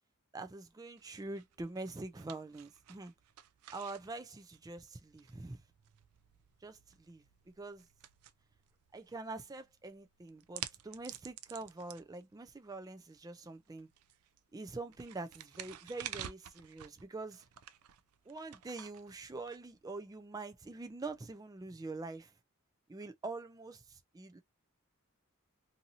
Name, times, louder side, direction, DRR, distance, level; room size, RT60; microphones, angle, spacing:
voice 1, 0.3-3.1 3.7-5.6 6.6-7.2 7.6-7.9 8.9-13.9 14.5-17.4 18.3-22.3 22.9-24.4, right 3 dB, 15° right, 0.4 m, -45 dB
sound 1, 1.0-20.2, right 11 dB, 80° right, 0.4 m, -52 dB
2.7 x 2.7 x 2.7 m
head